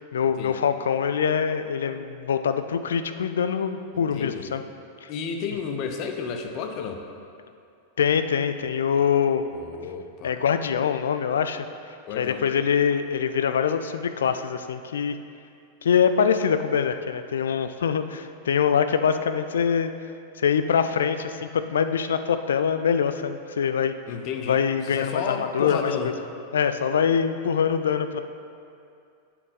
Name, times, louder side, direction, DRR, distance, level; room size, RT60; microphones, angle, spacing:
voice 1, 0.0-4.6 5.0-5.1 8.0-9.4 10.2-11.7 12.2-15.2 15.8-19.9 20.4-23.9 24.4-26.1 26.5-28.3, left 7 dB, 65° left, 10 dB, 0.4 m, -24 dB
voice 2, 3.9-4.6 5.1-7.0 9.5-10.3 12.1-12.5 24.1-26.2, left 6 dB, 40° left, 5 dB, 0.7 m, -32 dB
8.3 x 5.9 x 4.1 m, 2.5 s
figure-of-eight pair, 90°, 0 cm